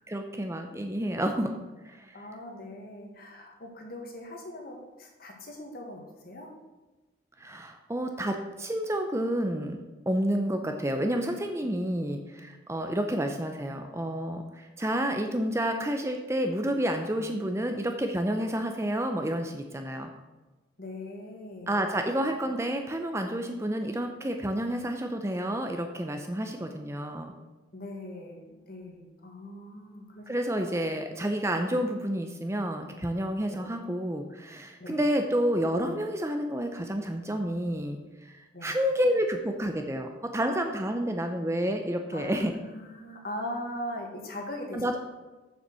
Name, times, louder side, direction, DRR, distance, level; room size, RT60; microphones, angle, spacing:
voice 1, 0.1-1.5 1.8-2.2 7.4-9.8 10.1-20.1 21.7-27.3 30.3-42.5 44.7-45.0, equal, 15° right, 5 dB, 0.6 m, -30 dB
voice 2, 2.1-6.5 11.6-11.7 12.4-12.9 20.8-21.8 27.7-30.9 33.5-33.6 34.8-35.0 38.5-38.7 42.1-44.8, left 1 dB, 50° left, 1 dB, 1.7 m, -41 dB
7.3 x 7.0 x 6.2 m, 1.2 s
head